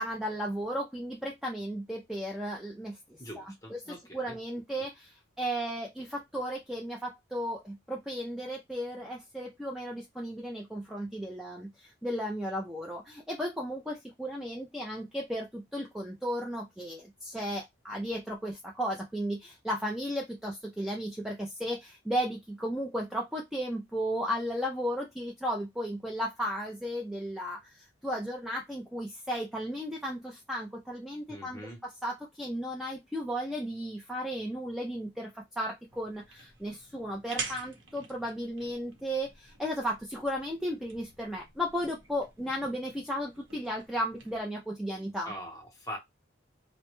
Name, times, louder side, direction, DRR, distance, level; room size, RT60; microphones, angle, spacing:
voice 1, 0.0-3.0 3.4-45.3, equal, ahead, 0.3 m, -35 dB
voice 2, 3.2-4.3 31.3-31.8 45.3-46.0, equal, 20° left, 0.7 m, -42 dB
sound 1, 35.9-44.4, right 4 dB, 85° right, 0.8 m, -46 dB
2.1 x 2.0 x 2.9 m
head